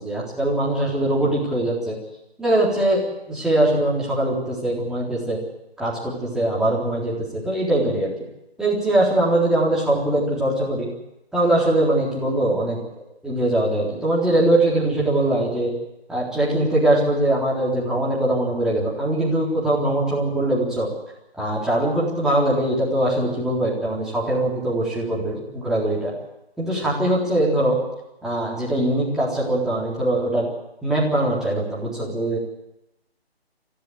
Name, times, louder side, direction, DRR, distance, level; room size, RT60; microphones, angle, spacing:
voice 1, 0.0-2.0 2.4-5.4 5.8-8.1 8.6-10.9 11.3-12.8 13.2-15.7 16.1-20.9 21.4-26.1 26.6-27.8 28.2-30.5 30.8-32.4, right 1 dB, ahead, -6 dB, 3.9 m, -22 dB
26.0 x 15.0 x 8.0 m, 0.90 s
figure-of-eight pair, 145°, 31 cm